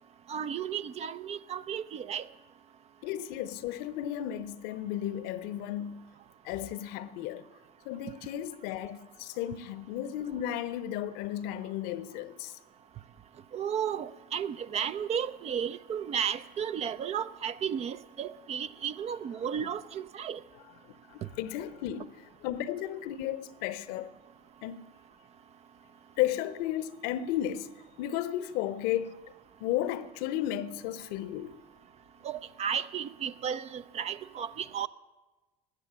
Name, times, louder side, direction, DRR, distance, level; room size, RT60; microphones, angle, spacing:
voice 1, 0.3-2.3 13.5-20.4 32.2-34.9, right 8 dB, 35° right, 0.6 m, -33 dB
voice 2, 3.0-6.1 6.4-7.5 7.8-12.5 19.5-19.7 21.1-24.1 24.6-24.8 26.2-27.7 28.0-29.2 29.6-31.6, left 12 dB, 55° left, 0.8 m, -34 dB
20.0 x 8.3 x 7.4 m
figure-of-eight pair, 65°, 19 cm